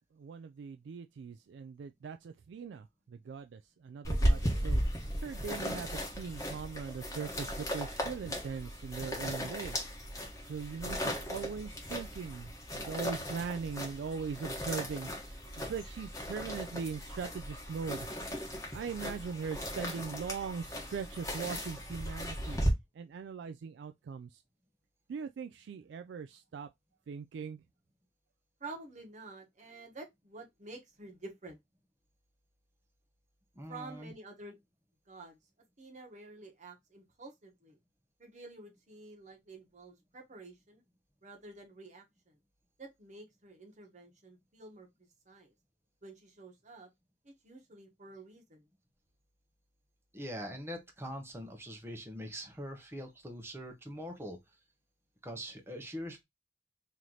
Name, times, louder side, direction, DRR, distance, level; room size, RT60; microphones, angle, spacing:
voice 1, 0.1-4.8 5.2-9.8 10.4-18.1 18.7-22.6 22.9-24.4 25.1-26.7 27.1-27.6, right 6 dB, 65° right, 0.3 m, -40 dB
sound 1, 4.0-22.7, equal, 15° left, 1.2 m, -36 dB
voice 2, 28.6-31.6 33.7-34.6 35.1-35.4 35.8-37.8 38.2-40.8 41.2-42.3 42.8-45.5 46.0-46.9 47.2-48.7, right 3 dB, 40° right, 1.2 m, -50 dB
voice 3, 33.5-34.1 50.1-54.4 55.2-56.2, equal, 15° right, 0.9 m, -43 dB
3.1 x 2.9 x 3.8 m
head